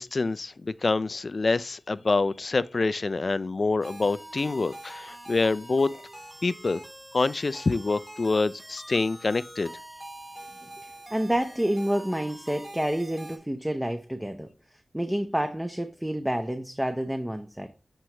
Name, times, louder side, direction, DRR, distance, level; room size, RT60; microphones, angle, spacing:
voice 1, 0.0-6.0 6.4-6.8 7.1-9.7, left 3 dB, 60° left, 0.4 m, -26 dB
sound 1, 3.8-13.4, right 1 dB, 25° right, 2.8 m, -44 dB
voice 2, 10.8-14.5 14.9-17.7, equal, 10° right, 0.7 m, -29 dB
7.8 x 4.4 x 2.9 m
cardioid pair, 45°, 0 cm